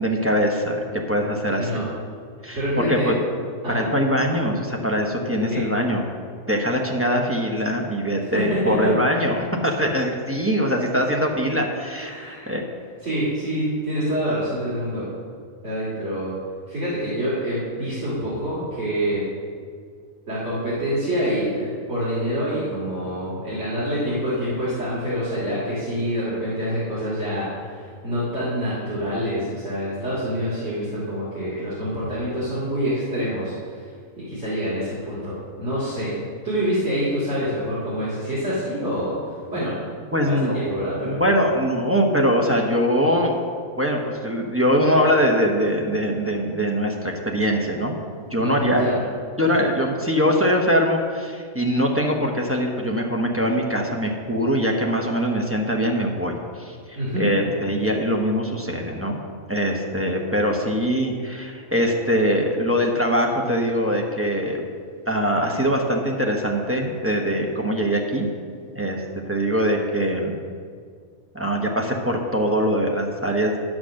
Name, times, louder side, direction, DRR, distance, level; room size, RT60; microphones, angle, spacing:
voice 1, 0.0-1.9 2.4-3.1 3.7-6.0 6.5-12.6 40.1-40.7 41.0-43.4 43.8-48.0 48.3-48.8 49.4-59.2 59.5-64.6 65.1-68.3 68.7-70.4 71.3-73.6, equal, 10° right, 0 dB, 0.8 m, -22 dB
voice 2, 2.5-3.1 3.6-3.9 5.5-5.6 8.3-8.9 11.9-12.5 13.0-15.0 15.6-16.3 16.7-19.2 20.3-33.8 34.2-36.1 36.4-39.1 39.5-39.7 40.3-41.2 48.4-49.0 56.9-57.3, equal, 55° right, -10 dB, 2.8 m, -26 dB
10.0 x 6.2 x 6.4 m, 2.1 s
omnidirectional pair, 1.5 m